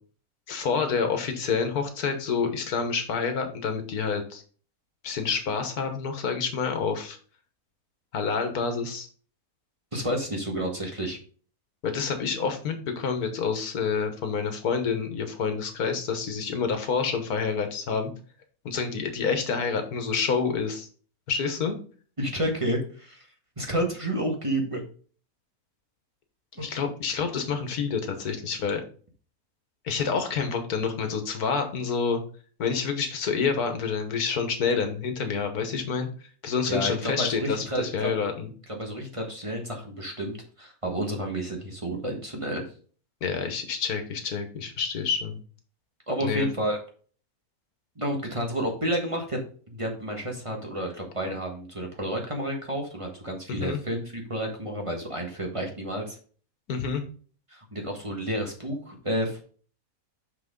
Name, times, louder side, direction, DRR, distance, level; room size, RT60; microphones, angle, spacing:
voice 1, 0.5-4.4 5.0-7.2 8.1-9.1 11.8-18.1 18.6-20.9 21.3-21.7 26.5-28.8 29.8-32.2 32.6-36.1 36.4-38.5 43.2-45.4 46.2-46.5 53.6-53.8 56.7-57.0, left 5 dB, 85° left, 6 dB, 1.7 m, -28 dB
voice 2, 9.9-11.2 22.2-23.3 23.6-24.8 26.6-26.7 36.4-38.1 38.7-42.6 46.1-46.8 48.0-49.4 49.7-56.2 57.5-59.4, right 1 dB, 20° right, 1 dB, 1.4 m, -30 dB
6.1 x 6.1 x 3.7 m, 0.42 s
omnidirectional pair, 1.6 m